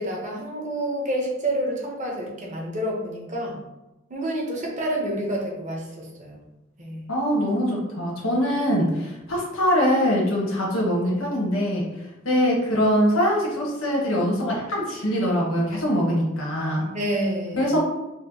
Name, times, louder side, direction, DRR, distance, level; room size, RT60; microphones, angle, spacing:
voice 1, 0.0-3.6 4.1-6.4 6.8-7.1 16.9-17.7, right 1 dB, 35° right, -2 dB, 1.0 m, -28 dB
voice 2, 7.1-11.8 12.2-16.8 17.5-17.8, equal, 70° left, -3 dB, 1.2 m, -23 dB
4.3 x 2.1 x 4.0 m, 0.98 s
head